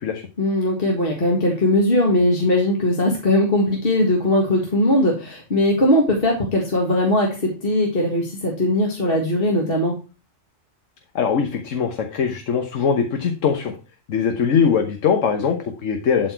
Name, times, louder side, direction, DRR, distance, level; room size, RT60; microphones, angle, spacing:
voice 1, 0.4-9.9, left 1 dB, 45° left, -1 dB, 2.0 m, -19 dB
voice 2, 11.1-13.7 14.1-16.3, left 6 dB, 75° left, 5 dB, 1.3 m, -21 dB
11.5 x 4.4 x 4.4 m, 0.32 s
omnidirectional pair, 1.3 m